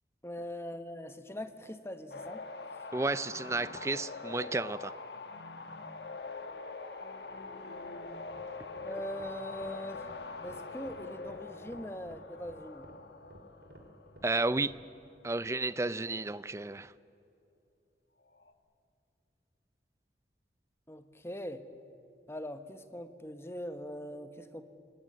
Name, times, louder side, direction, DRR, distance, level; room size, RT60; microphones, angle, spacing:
voice 1, 0.2-2.5 8.8-10.1 10.4-12.9 20.9-21.6 22.3-24.6, left 1 dB, 15° left, 9 dB, 1.1 m, -41 dB
sound 1, 2.1-14.5 18.3-18.5, left 3 dB, 75° left, 1.6 m, -44 dB
voice 2, 2.9-4.9 14.2-14.7 15.2-16.9, right 2 dB, 15° right, 16 dB, 0.5 m, -32 dB
sound 2, 8.2-14.8, right 1 dB, 70° right, 3.0 m, -54 dB
27.5 x 18.5 x 8.8 m, 2.7 s
head